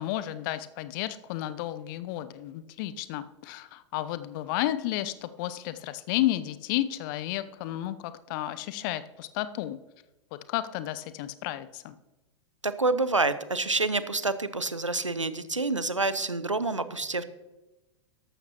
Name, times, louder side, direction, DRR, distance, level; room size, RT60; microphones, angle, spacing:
voice 1, 0.0-9.8 10.5-12.0, left 14 dB, 45° left, 14 dB, 0.7 m, -32 dB
voice 2, 12.6-17.2, right 3 dB, 90° right, 14 dB, 0.7 m, -27 dB
14.0 x 12.0 x 2.9 m, 1.0 s
figure-of-eight pair, 95°, 16 cm